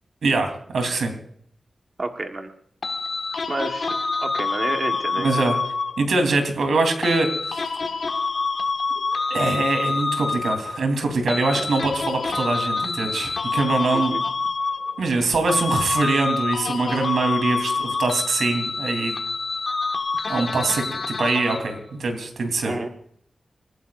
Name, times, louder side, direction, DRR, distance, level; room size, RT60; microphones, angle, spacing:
voice 1, 0.2-1.1 5.1-5.6 6.0-7.6 9.3-14.1 15.0-19.1 20.3-22.8, right 3 dB, 90° right, 5 dB, 3.3 m, -23 dB
voice 2, 2.0-2.5 3.5-5.5 11.5-11.9 13.9-14.2 22.6-22.9, right 2 dB, 30° right, 4 dB, 1.3 m, -30 dB
sound 1, 2.8-6.2 7.0-10.8 11.3-15.2 15.5-21.8, left 4 dB, 45° left, 1.6 m, -27 dB
27.5 x 16.0 x 2.5 m, 0.65 s
wide cardioid pair, 175°, 0 cm